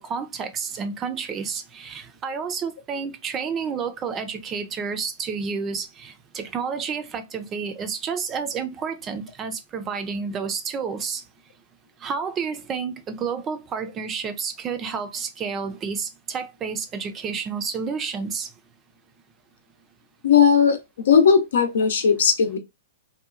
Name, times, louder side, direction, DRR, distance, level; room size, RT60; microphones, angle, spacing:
voice 1, 0.0-11.2 12.0-18.5, right 6 dB, 25° right, 0.5 m, -30 dB
voice 2, 20.2-20.8 21.1-22.6, left 7 dB, 70° left, 0.6 m, -17 dB
2.8 x 2.2 x 2.4 m
hypercardioid pair, 120°, 0 cm